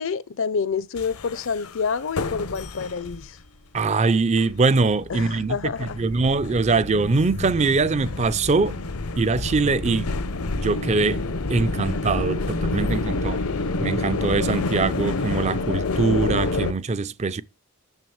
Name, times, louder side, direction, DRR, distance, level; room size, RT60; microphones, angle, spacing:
voice 1, 0.0-3.4 5.1-6.0 9.9-10.0, left 5 dB, 60° left, 0.6 m, -28 dB
sound 1, 1.0-3.3 3.8-3.9 4.4-16.7, left 3 dB, 85° left, 0.9 m, -28 dB
voice 2, 3.7-8.8 9.2-10.1 10.6-11.2 11.5-13.4 13.8-17.4, right 4 dB, 30° right, 0.4 m, -22 dB
7.0 x 6.1 x 7.1 m
head